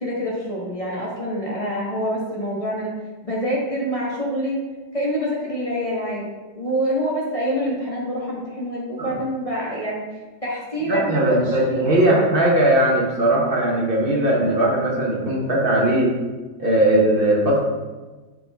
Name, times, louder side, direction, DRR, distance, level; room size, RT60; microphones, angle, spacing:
voice 1, 0.0-2.9 3.2-4.6 4.9-6.2 6.5-10.0 10.4-11.9 12.1-12.3, equal, 30° left, -5 dB, 0.6 m, -26 dB
voice 2, 10.8-16.1 16.6-17.6, right 1 dB, 40° right, -2 dB, 0.9 m, -19 dB
7.5 x 3.8 x 3.4 m, 1.2 s
omnidirectional pair, 2.0 m